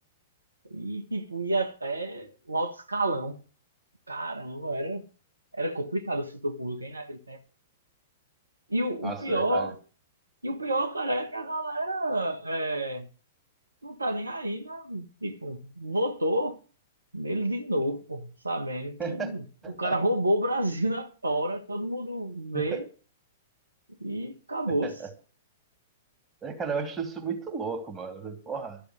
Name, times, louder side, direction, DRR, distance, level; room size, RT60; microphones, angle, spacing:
voice 1, 0.7-3.4 4.1-5.0 5.5-7.4 8.7-9.8 10.4-13.1 13.8-16.6 17.1-22.8 24.0-25.0, right 1 dB, 80° right, 1.5 m, -30 dB
voice 2, 9.0-9.7 19.0-19.3 19.6-20.0 22.5-22.8 24.8-25.1 26.4-28.8, right 5 dB, 15° right, 2.9 m, -34 dB
13.0 x 7.0 x 9.1 m
figure-of-eight pair, 105°, 0 cm